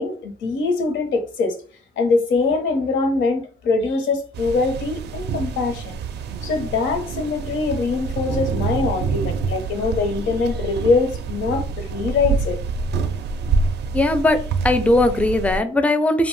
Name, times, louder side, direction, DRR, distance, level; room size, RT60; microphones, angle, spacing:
voice 1, 0.0-1.6 2.0-5.9 6.4-12.6, left 3 dB, 75° left, 0.8 m, -22 dB
sound 1, 4.3-15.6, right 5 dB, 60° right, 0.4 m, -26 dB
voice 2, 13.9-16.3, left 2 dB, 5° left, 0.4 m, -19 dB
2.5 x 2.1 x 3.1 m
cardioid pair, 90°, 20 cm